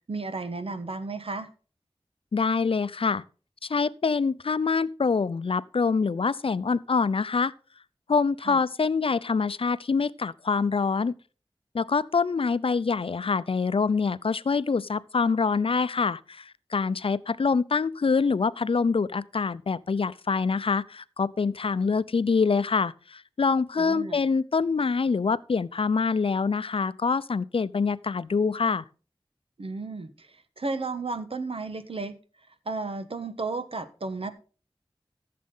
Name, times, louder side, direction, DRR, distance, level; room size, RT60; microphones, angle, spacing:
voice 1, 0.1-1.5 8.4-8.6 23.8-24.2 29.6-32.1 32.6-34.3, right 3 dB, 80° right, 1.3 m, -33 dB
voice 2, 2.3-3.2 3.6-7.5 8.1-11.1 11.7-28.8, left 5 dB, 75° left, 0.5 m, -25 dB
15.0 x 7.5 x 3.9 m
wide cardioid pair, 70°, 10 cm